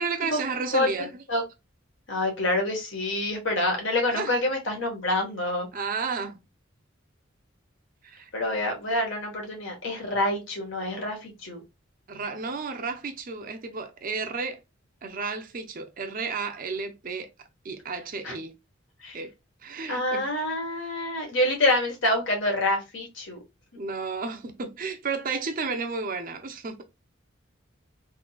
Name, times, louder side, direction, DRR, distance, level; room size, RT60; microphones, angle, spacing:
voice 1, 0.0-1.1 4.1-4.4 5.7-6.4 8.0-8.3 12.1-14.6 15.0-17.3 17.6-18.5 19.1-19.3 19.6-20.3 23.8-26.8, right 4 dB, 45° right, 0.6 m, -32 dB
voice 2, 0.7-1.4 2.1-5.7 8.3-11.6 18.2-18.3 19.0-19.2 19.9-23.4, left 1 dB, 70° left, 1.3 m, -27 dB
3.7 x 2.8 x 2.3 m
head